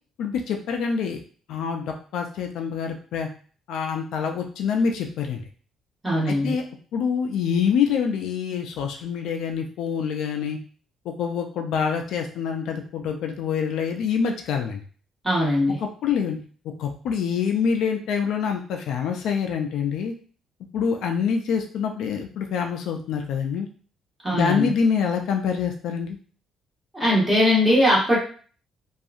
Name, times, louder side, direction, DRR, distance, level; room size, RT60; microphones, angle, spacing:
voice 1, 0.2-1.2 1.5-1.8 2.1-3.3 3.7-5.4 6.3-6.6 6.9-10.6 11.2-14.8 16.0-16.4 16.8-20.1 20.7-23.7 24.3-26.2, left 6 dB, 70° left, 3 dB, 0.3 m, -26 dB
voice 2, 6.0-6.6 15.2-15.8 24.2-24.7 26.9-28.2, left 1 dB, 10° right, -6 dB, 1.1 m, -20 dB
2.7 x 2.3 x 2.4 m, 0.42 s
cardioid pair, 155°, 0 cm